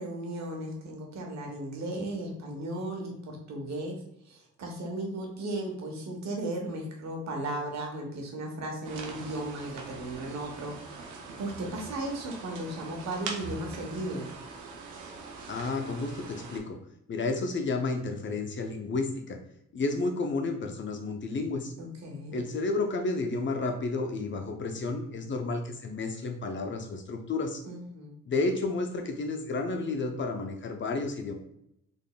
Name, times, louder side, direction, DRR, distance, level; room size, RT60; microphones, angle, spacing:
voice 1, 0.0-4.0 4.2-11.0 11.4-14.3 21.8-22.5 27.7-28.2, right 1 dB, 65° right, 1 dB, 1.1 m, -36 dB
sound 1, 8.8-16.6, right 4 dB, 85° right, 0.7 m, -42 dB
voice 2, 15.5-16.8 17.1-19.4 19.7-21.7 22.3-27.6 28.3-31.3, left 3 dB, 40° left, 4 dB, 0.6 m, -31 dB
3.7 x 3.5 x 2.2 m, 0.78 s
cardioid pair, 90°, 30 cm